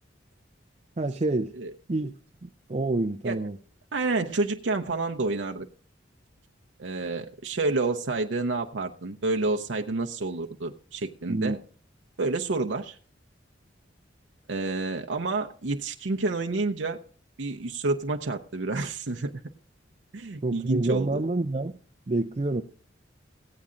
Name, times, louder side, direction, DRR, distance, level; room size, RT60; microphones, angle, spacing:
voice 1, 1.0-1.5 1.9-2.1 2.4-3.6 11.3-11.6 20.4-21.8 22.1-22.6, right 2 dB, 35° right, 5 dB, 0.5 m, -27 dB
voice 2, 3.9-5.7 6.8-11.6 12.2-13.0 14.5-17.0 17.4-19.3 20.1-21.2, right 3 dB, 75° right, 4 dB, 0.6 m, -29 dB
16.0 x 8.5 x 3.8 m, 0.42 s
head